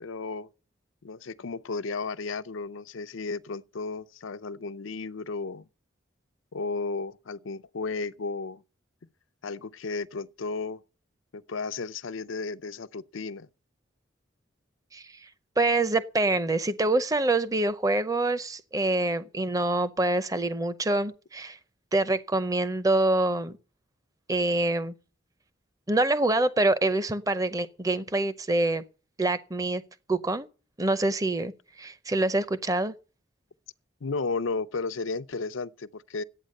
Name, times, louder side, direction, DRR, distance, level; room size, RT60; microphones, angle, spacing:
voice 1, 0.0-0.5 1.0-5.7 6.5-8.6 9.4-10.8 11.3-13.5 34.0-36.2, left 4 dB, 90° left, 0.6 m, -34 dB
voice 2, 14.9-15.3 15.6-21.6 21.9-23.6 24.3-24.9 25.9-28.8 29.2-29.8 30.1-30.5 30.8-31.5 31.8-32.9, right 2 dB, 20° right, 0.6 m, -26 dB
12.5 x 9.0 x 6.5 m
head